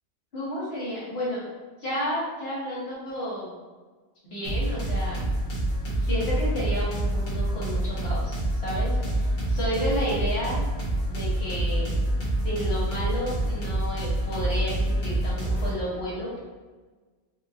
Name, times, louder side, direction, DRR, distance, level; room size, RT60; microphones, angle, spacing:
voice 1, 0.3-1.4 1.8-3.5 4.2-5.3 6.0-8.4 8.6-10.6 11.1-11.9 12.4-16.4, equal, 60° left, -7 dB, 1.5 m, -31 dB
sound 1, 4.4-15.7, right 1 dB, 80° left, 1.5 m, -27 dB
4.4 x 2.4 x 2.7 m, 1.3 s
omnidirectional pair, 1.2 m